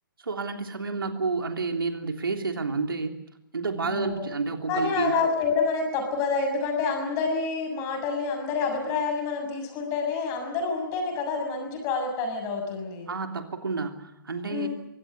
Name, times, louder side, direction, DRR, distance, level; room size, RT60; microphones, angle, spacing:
voice 1, 0.2-3.2 3.5-5.1 13.1-14.7, right 4 dB, 85° right, 5 dB, 3.2 m, -30 dB
voice 2, 3.8-4.3 4.7-13.1 14.5-14.7, left 4 dB, 25° left, 4 dB, 6.9 m, -28 dB
23.5 x 16.5 x 9.9 m, 0.84 s
hypercardioid pair, 150°, 11 cm